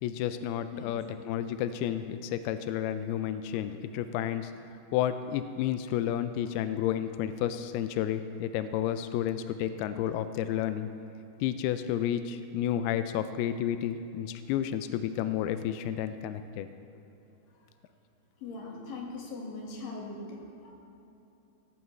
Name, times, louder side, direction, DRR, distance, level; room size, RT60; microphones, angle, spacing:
voice 1, 0.0-4.5 4.9-10.9 11.4-16.7, left 10 dB, 85° left, 10 dB, 2.2 m, -31 dB
voice 2, 18.4-20.4 20.6-20.7, left 3 dB, 60° left, -2 dB, 3.2 m, -40 dB
17.0 x 16.0 x 3.2 m, 2.9 s
omnidirectional pair, 5.0 m